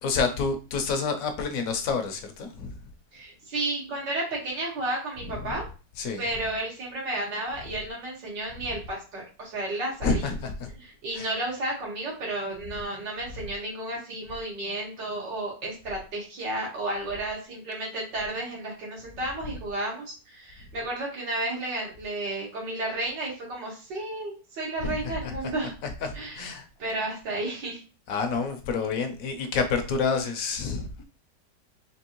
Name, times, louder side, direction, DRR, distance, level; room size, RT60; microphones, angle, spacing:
voice 1, 0.0-2.8 5.2-5.6 6.0-6.2 10.0-10.7 11.1-11.3 24.8-25.5 25.8-26.7 28.1-31.0, left 4 dB, 65° left, 1.0 m, -29 dB
voice 2, 3.1-5.7 6.2-10.3 10.8-25.7 26.1-26.5 26.8-27.8, right 2 dB, 80° right, 2.3 m, -32 dB
4.4 x 2.8 x 2.9 m
omnidirectional pair, 1.9 m